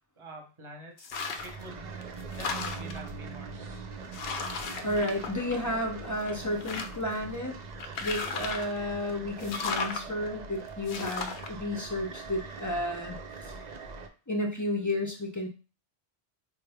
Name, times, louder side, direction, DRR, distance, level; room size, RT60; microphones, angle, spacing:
voice 1, 0.2-3.9, right 1 dB, 30° right, 1 dB, 0.9 m, -47 dB
sound 1, 1.0-1.6 2.0-3.1 3.7-3.8 4.1-5.9 6.2-7.1 7.8-8.8 9.4-10.0 10.9-11.5, left 4 dB, 70° left, 0.8 m, -35 dB
sound 2, 1.1-14.1, right 4 dB, 55° right, 0.5 m, -42 dB
voice 2, 4.8-7.6 8.0-13.2 13.4-13.6 14.3-15.5, left 1 dB, 25° left, 1 dB, 0.4 m, -32 dB
4.5 x 2.2 x 3.3 m, 0.33 s
omnidirectional pair, 1.1 m